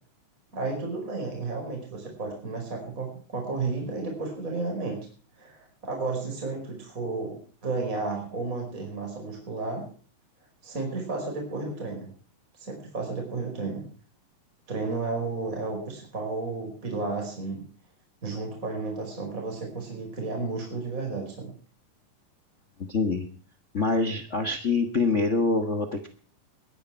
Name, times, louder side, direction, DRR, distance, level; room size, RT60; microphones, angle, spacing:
voice 1, 0.5-5.0 5.4-9.8 10.6-12.1 12.6-13.8 14.7-17.6 18.2-21.5, right 3 dB, 25° right, 1 dB, 5.2 m, -32 dB
voice 2, 22.8-23.3 23.7-26.1, left 3 dB, 90° left, 8 dB, 0.6 m, -25 dB
22.0 x 10.5 x 4.5 m, 0.43 s
omnidirectional pair, 3.9 m